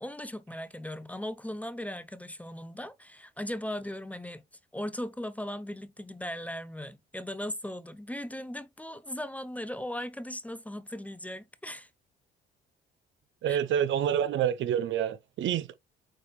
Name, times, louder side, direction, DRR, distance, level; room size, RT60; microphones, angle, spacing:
voice 1, 0.0-4.4 4.7-11.9 13.5-13.6, left 1 dB, 5° left, 0.6 m, -38 dB
voice 2, 13.4-15.7, right 9 dB, 70° right, 0.7 m, -27 dB
8.9 x 3.3 x 3.2 m
cardioid pair, 90°, 20 cm